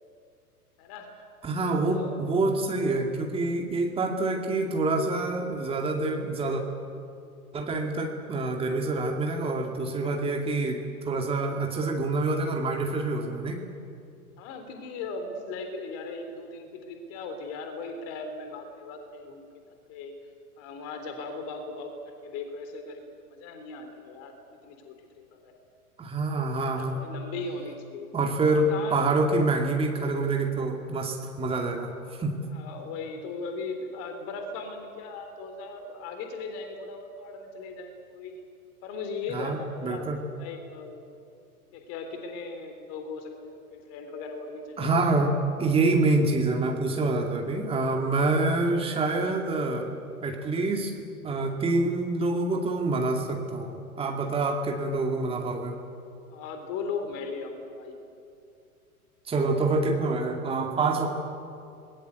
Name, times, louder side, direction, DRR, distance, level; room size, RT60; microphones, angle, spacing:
voice 1, 0.8-1.1 1.8-2.2 14.4-19.5 19.9-20.1 20.6-21.9 22.2-24.3 24.6-24.9 25.3-25.5 26.3-28.1 28.7-29.2 32.5-38.4 38.8-40.0 40.3-41.1 41.7-45.0 56.3-58.0, left 4 dB, 30° left, 6 dB, 3.7 m, -38 dB
voice 2, 1.4-6.6 7.5-13.6 26.0-27.0 28.1-32.3 39.3-40.2 44.8-45.3 45.6-49.9 50.2-55.8 59.3-61.1, right 2 dB, 10° right, 3 dB, 2.4 m, -26 dB
28.0 x 21.5 x 8.2 m, 2.5 s
figure-of-eight pair, 105°, 45 cm